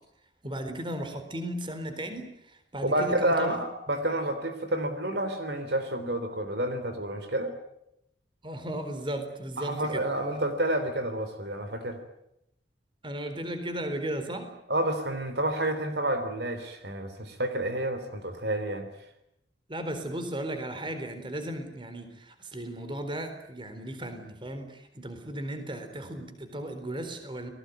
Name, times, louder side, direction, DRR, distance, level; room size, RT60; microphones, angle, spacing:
voice 1, 0.4-3.6 8.4-10.0 13.0-14.5 19.7-27.5, right 1 dB, 25° right, 8 dB, 4.0 m, -35 dB
voice 2, 2.8-7.6 9.6-12.0 14.7-18.9, right 1 dB, 60° right, 9 dB, 3.4 m, -29 dB
30.0 x 20.0 x 9.3 m, 0.81 s
head